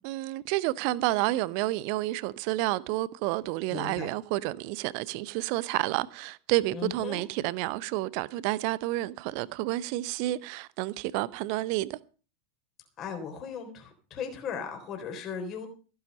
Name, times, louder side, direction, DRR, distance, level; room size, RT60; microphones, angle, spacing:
voice 1, 0.0-12.0, right 18 dB, 45° right, 0.7 m, -30 dB
voice 2, 3.7-4.1 6.7-7.2 13.0-15.7, left 6 dB, 30° left, 3.7 m, -37 dB
15.0 x 10.5 x 5.3 m
figure-of-eight pair, 90°, 0 cm